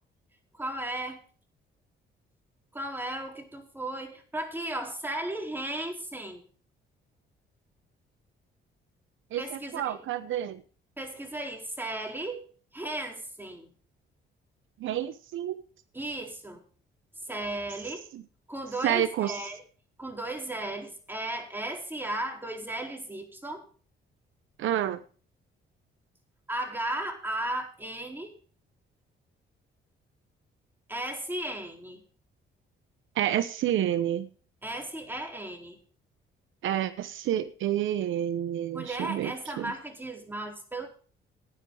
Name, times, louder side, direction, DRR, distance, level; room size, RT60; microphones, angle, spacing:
voice 1, 0.5-1.2 2.7-6.4 9.4-9.9 11.0-12.5 12.7-13.7 15.9-16.6 17.2-18.1 18.5-19.6 20.0-23.6 26.5-28.3 30.9-32.0 34.6-35.8 38.7-40.9, right 1 dB, 10° right, 2 dB, 4.2 m, -35 dB
voice 2, 9.3-10.6 14.8-15.6 18.1-18.2 18.8-19.4 24.6-25.0 33.1-34.3 36.6-39.7, right 11 dB, 80° right, 12 dB, 1.0 m, -29 dB
16.5 x 10.0 x 3.9 m, 0.40 s
cardioid pair, 90°, 20 cm